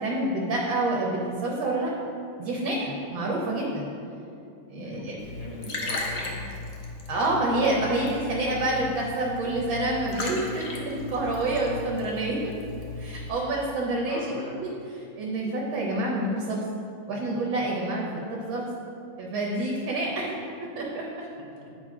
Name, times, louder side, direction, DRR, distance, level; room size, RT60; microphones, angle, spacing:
voice 1, 0.0-1.9 2.4-3.9 4.7-5.1 7.1-12.4 13.0-14.3 14.6-14.8 15.2-16.6 17.1-18.7 19.2-20.4 20.7-21.1, right 2 dB, 80° right, -3 dB, 1.7 m, -27 dB
voice 2, 4.8-6.4 14.0-14.6, left 1 dB, 25° left, -4 dB, 1.0 m, -40 dB
Liquid, 5.2-13.3, left 2 dB, 50° left, 0.8 m, -37 dB
8.9 x 4.0 x 4.7 m, 2.6 s
omnidirectional pair, 2.1 m